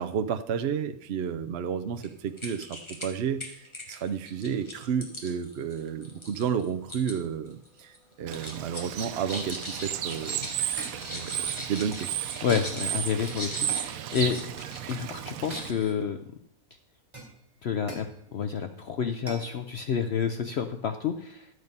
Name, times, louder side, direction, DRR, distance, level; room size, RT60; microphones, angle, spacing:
voice 1, 0.0-3.4 3.9-10.5 11.1-12.1, right 7 dB, 60° right, 8 dB, 0.8 m, -31 dB
sound 1, 2.0-2.1 2.4-3.1 3.4-7.1 7.5-8.0 8.3-15.0 15.3-15.9, left 1 dB, 20° left, 1.9 m, -40 dB
Bird / Water, 8.3-15.7, right 11 dB, 80° right, 1.0 m, -34 dB
sound 2, 10.8-11.1 12.5-12.8 13.7-14.0 15.5-16.1 17.1-18.2 19.3-19.5, right 1 dB, 20° right, 3.4 m, -42 dB
voice 2, 12.4-14.4 14.9-16.2 17.6-21.5, left 7 dB, 60° left, 8 dB, 0.8 m, -29 dB
12.0 x 8.0 x 5.4 m, 0.72 s
omnidirectional pair, 1.5 m